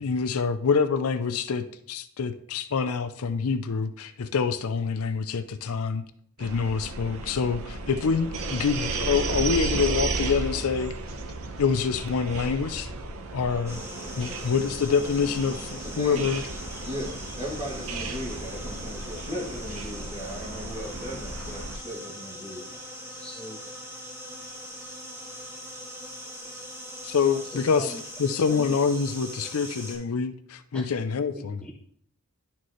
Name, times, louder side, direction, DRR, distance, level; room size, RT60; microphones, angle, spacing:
voice 1, 0.0-6.0 6.4-10.9 11.6-12.9 13.3-13.8 14.2-16.4 27.0-27.9 28.2-31.6, left 5 dB, 75° left, 11 dB, 0.5 m, -26 dB
sound 1, 6.4-21.8, right 3 dB, 70° right, 0.8 m, -34 dB
sound 2, 13.7-30.0, equal, 10° right, 1.7 m, -41 dB
voice 2, 15.8-16.3 16.8-22.8, equal, 30° right, -5 dB, 2.6 m, -37 dB
voice 3, 23.1-23.6 27.3-28.0 28.5-28.8 30.7-30.8 31.4-31.9, left 1 dB, 5° left, 0 dB, 0.5 m, -41 dB
11.0 x 4.4 x 3.1 m, 0.66 s
head